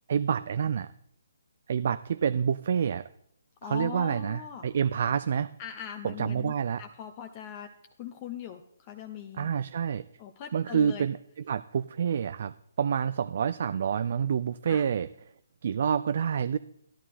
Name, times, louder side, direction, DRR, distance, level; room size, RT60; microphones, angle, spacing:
voice 1, 0.1-0.9 1.7-3.1 3.7-5.5 6.0-6.8 9.4-10.0 10.5-11.2 11.5-15.1 15.6-16.6, right 7 dB, 55° right, 13 dB, 0.3 m, -28 dB
voice 2, 3.6-4.7 5.6-6.5 6.8-7.7 8.0-9.5 10.2-11.1 14.7-14.8, left 9 dB, 30° left, 6 dB, 0.7 m, -40 dB
13.0 x 11.0 x 4.2 m, 0.70 s
hypercardioid pair, 150°, 0 cm